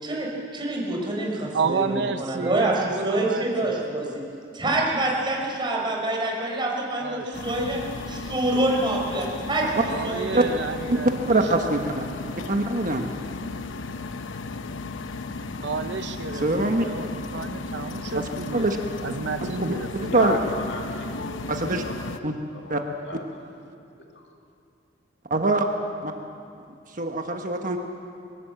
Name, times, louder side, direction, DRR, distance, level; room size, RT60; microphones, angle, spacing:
voice 1, 0.0-4.2 4.5-10.6, right 1 dB, 25° right, -1 dB, 4.9 m, -26 dB
voice 2, 1.5-3.8 7.0-7.4 9.9-11.9 15.6-19.9, right 4 dB, 65° right, 9 dB, 0.7 m, -31 dB
sound 1, 7.3-22.2, left 3 dB, 85° left, 0.9 m, -35 dB
voice 3, 11.3-12.0 12.5-13.1 16.4-16.9 18.1-18.2 18.5-18.8 19.6-19.7 20.1-20.4 21.5-21.8 22.2-22.3 22.7-22.8 25.3-25.7 26.0-26.1 26.9-27.8, right 2 dB, 45° right, 4 dB, 1.3 m, -23 dB
voice 4, 20.1-21.3 21.7-23.4 24.0-24.3, left 1 dB, 65° left, 2 dB, 2.6 m, -35 dB
22.0 x 18.0 x 8.0 m, 2.6 s
head